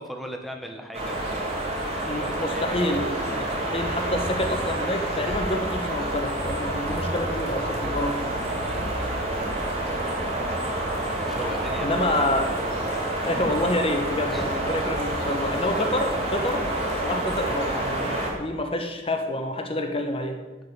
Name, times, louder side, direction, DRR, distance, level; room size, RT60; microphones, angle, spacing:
voice 1, 0.0-2.9 8.6-9.2 11.3-12.3 14.3-14.8 15.2-15.4 15.7-16.0, equal, ahead, 3 dB, 1.2 m, -39 dB
sound 1, 0.9-18.3, right 1 dB, 35° right, 2.5 m, -28 dB
voice 2, 2.0-8.3 11.8-12.5 13.1-20.4, left 1 dB, 30° left, 5 dB, 1.2 m, -28 dB
11.0 x 5.3 x 8.2 m, 1.1 s
head